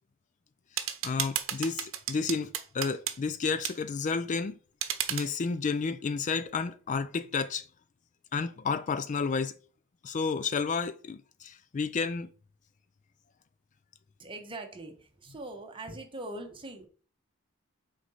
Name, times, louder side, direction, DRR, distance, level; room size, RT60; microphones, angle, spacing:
voice 1, 0.8-4.6 5.1-7.6 8.3-9.5 10.0-12.3, left 5 dB, 35° left, 0.4 m, -31 dB
sound 1, 0.8-3.2 3.6-3.8 4.8-5.3, right 10 dB, 70° right, 0.9 m, -33 dB
voice 2, 14.2-16.9, right 2 dB, 25° right, 1.1 m, -42 dB
6.1 x 4.1 x 5.6 m
head